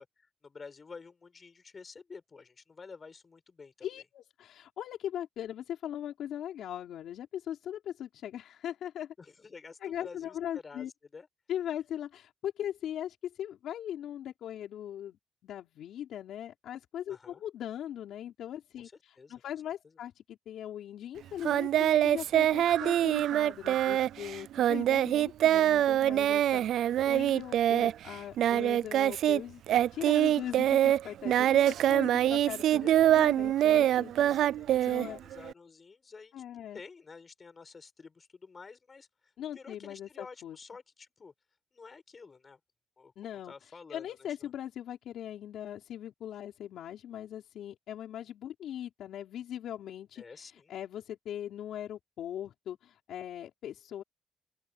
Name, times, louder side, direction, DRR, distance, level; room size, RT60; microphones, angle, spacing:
voice 1, 0.0-3.9 9.2-10.4 10.6-10.9 11.1-11.3 17.1-17.4 18.8-19.4 32.8-33.1 34.2-36.4 36.7-41.3 41.7-42.6 43.0-43.1 43.5-44.5 50.2-50.7, left 4 dB, 25° left, 7.5 m, -50 dB
voice 2, 3.8-9.1 9.8-10.9 11.5-15.2 15.4-29.6 29.9-34.1 34.8-35.2 36.3-36.8 39.4-40.6 43.2-54.0, left 10 dB, 70° left, 5.2 m, -40 dB
Singing, 21.4-29.4 29.7-35.5, right 11 dB, 70° right, 0.4 m, -25 dB
open air
cardioid pair, 155°, 0 cm